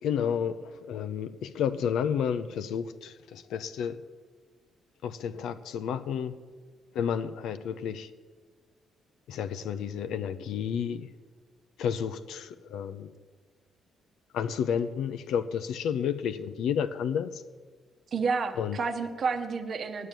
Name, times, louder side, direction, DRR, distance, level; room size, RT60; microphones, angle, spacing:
voice 1, 0.0-4.0 5.0-6.4 6.9-8.1 9.3-11.1 11.8-13.1 14.3-17.4 18.6-18.8, left 8 dB, 80° left, 0.6 m, -31 dB
voice 2, 18.1-20.1, right 4 dB, 50° right, 0.9 m, -30 dB
9.1 x 8.4 x 9.1 m
cardioid pair, 90°, 0 cm